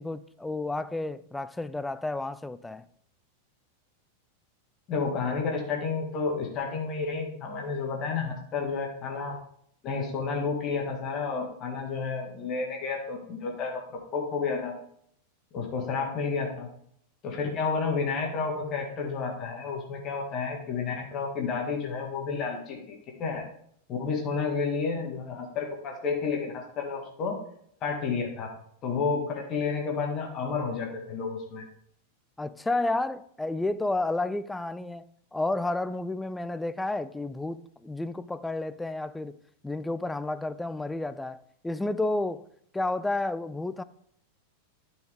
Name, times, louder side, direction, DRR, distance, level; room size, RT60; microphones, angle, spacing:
voice 1, 0.0-2.8 32.4-35.1 35.3-39.4 39.6-41.4 41.6-42.5 42.7-43.8, left 2 dB, 5° left, 0.4 m, -31 dB
voice 2, 4.9-9.4 9.8-14.7 15.5-16.7 17.2-23.4 23.9-27.3 27.8-28.5 28.8-31.6, left 5 dB, 35° left, 1.8 m, -31 dB
12.5 x 4.7 x 3.6 m
figure-of-eight pair, 90°, 0 cm